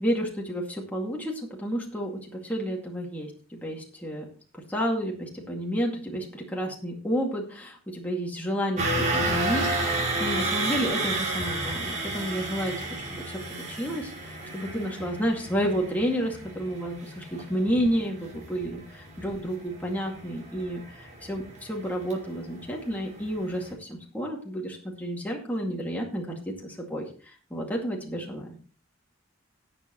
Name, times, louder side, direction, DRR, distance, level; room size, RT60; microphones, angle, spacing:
voice 1, 0.0-4.3 4.5-28.5, equal, 10° left, -2 dB, 2.2 m, -31 dB
sound 1, 8.8-22.8 23.2-23.4 23.7-23.8, right 2 dB, 40° right, 5.1 m, -31 dB
18.0 x 7.6 x 3.0 m, 0.40 s
head